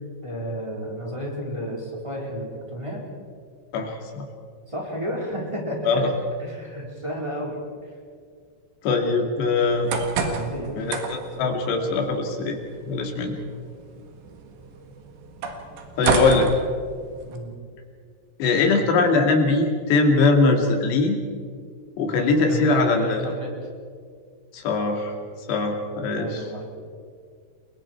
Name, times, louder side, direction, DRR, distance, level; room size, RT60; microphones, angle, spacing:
voice 1, 0.2-3.0 4.7-5.9 6.4-7.9 10.2-10.8 17.2-17.5 22.4-23.5 26.1-26.6, equal, 5° right, -3 dB, 4.0 m, -32 dB
voice 2, 3.7-4.3 5.9-6.1 8.8-9.9 10.8-12.6 12.8-13.4 16.0-16.5 18.4-21.2 22.0-23.3 24.5-25.1 25.5-26.5, left 3 dB, 75° left, 3 dB, 4.5 m, -21 dB
sound 1, 9.6-17.4, right 4 dB, 80° right, 4.0 m, -31 dB
29.5 x 22.0 x 4.6 m, 2.1 s
omnidirectional pair, 4.9 m